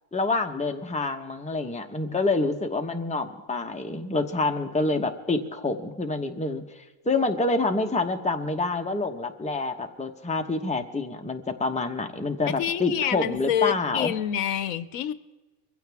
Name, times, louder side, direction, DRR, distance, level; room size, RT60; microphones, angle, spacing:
voice 1, 0.1-14.1, left 3 dB, 5° left, 4 dB, 0.9 m, -27 dB
voice 2, 12.5-15.1, left 10 dB, 80° left, 14 dB, 1.1 m, -27 dB
23.0 x 15.5 x 3.5 m, 1.2 s
omnidirectional pair, 1.4 m